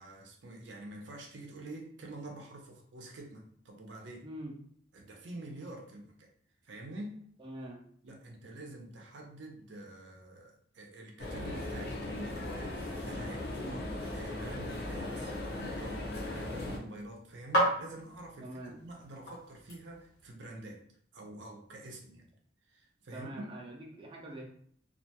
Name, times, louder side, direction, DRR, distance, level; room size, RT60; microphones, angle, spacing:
voice 1, 0.0-4.3 4.9-6.3 6.6-7.2 8.0-13.8 14.1-20.8 21.1-22.3 22.7-23.6, right 1 dB, 75° right, 1 dB, 0.5 m, -47 dB
voice 2, 4.2-4.6 7.4-7.8 13.5-13.8 18.4-18.8 23.1-24.5, right 1 dB, 25° right, -2 dB, 0.4 m, -44 dB
sound 1, 11.2-16.8, left 1 dB, 60° left, 0.5 m, -38 dB
sound 2, 15.4-20.3, right 1 dB, 75° left, 1.1 m, -37 dB
2.4 x 2.2 x 2.8 m, 0.62 s
head